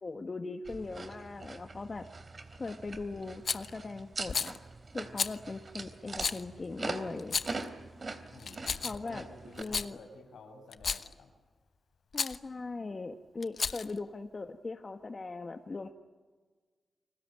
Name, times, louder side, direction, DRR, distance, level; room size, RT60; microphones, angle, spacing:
voice 1, 0.0-2.1 2.6-4.6 4.9-7.4 8.8-9.2 9.6-10.0 12.1-15.9, left 3 dB, 45° left, 6 dB, 1.6 m, -40 dB
sound 1, 0.7-9.6, right 3 dB, 50° right, 3.3 m, -43 dB
Rattle, 3.4-3.7 4.3-4.6 5.2-5.4 6.2-6.4 7.2-7.6 8.4-9.1 9.6-9.9 10.7-11.1 12.1-12.4 13.4-14.0, left 5 dB, 70° left, 1.0 m, -33 dB
voice 2, 8.3-11.3, left 3 dB, 90° left, 4 dB, 6.5 m, -52 dB
29.5 x 21.0 x 9.2 m, 1.4 s
cardioid pair, 45°, 0 cm